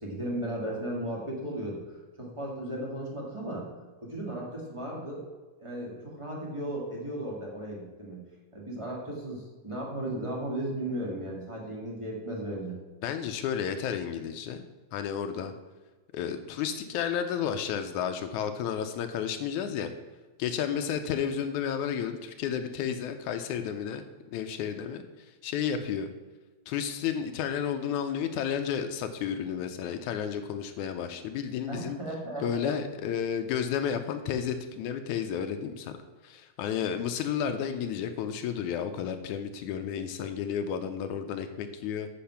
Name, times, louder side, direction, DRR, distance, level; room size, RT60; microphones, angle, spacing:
voice 1, 0.0-1.8 2.2-3.7 4.0-5.2 5.6-8.2 8.5-12.8 31.7-32.7, right 1 dB, 15° right, -3 dB, 0.9 m, -35 dB
voice 2, 13.0-14.7 14.9-15.5 16.1-19.9 20.4-24.0 24.3-26.1 26.7-32.0 32.4-35.9 36.2-42.1, left 8 dB, 80° left, 7 dB, 1.8 m, -32 dB
8.5 x 6.3 x 5.7 m, 1.2 s
omnidirectional pair, 3.9 m